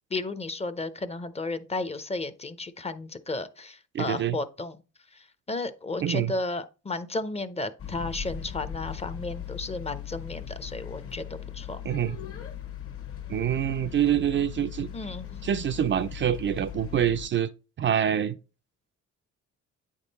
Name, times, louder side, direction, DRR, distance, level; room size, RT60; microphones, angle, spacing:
voice 1, 0.1-4.8 5.1-11.8 14.9-15.3, left 2 dB, 20° left, 0.6 m, -33 dB
voice 2, 3.9-4.4 6.0-6.3 11.8-12.2 13.3-14.9 15.4-17.5 17.8-18.3, right 10 dB, 40° right, 0.4 m, -26 dB
sound 1, 7.8-17.3, left 9 dB, 50° left, 1.1 m, -39 dB
8.9 x 3.7 x 4.0 m
cardioid pair, 90°, 30 cm